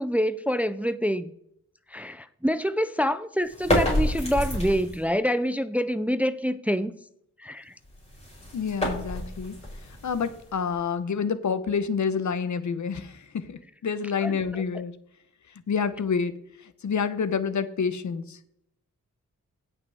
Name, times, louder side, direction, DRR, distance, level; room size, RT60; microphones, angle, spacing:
voice 1, 0.0-1.3 1.9-6.9 7.4-7.7 14.2-14.6, equal, 5° right, 0.4 m, -26 dB
sound 1, 3.5-5.1 7.8-10.8, left 1 dB, 20° left, 4.8 m, -29 dB
voice 2, 8.5-9.6 10.0-14.9 15.7-16.3 16.8-18.4, left 6 dB, 70° left, 0.9 m, -28 dB
17.0 x 5.9 x 3.5 m
wide cardioid pair, 95°, 31 cm